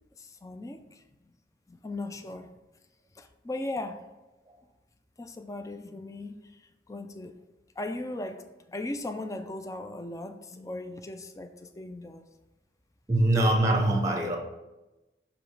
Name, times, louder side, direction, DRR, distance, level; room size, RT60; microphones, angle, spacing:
voice 1, 0.2-1.0 1.7-2.5 3.2-4.0 5.2-6.4 6.9-7.3 7.8-12.2, left 2 dB, 20° left, 8 dB, 0.4 m, -38 dB
voice 2, 13.1-14.4, right 1 dB, 20° right, 3 dB, 0.8 m, -23 dB
6.9 x 3.0 x 4.8 m, 1.0 s
head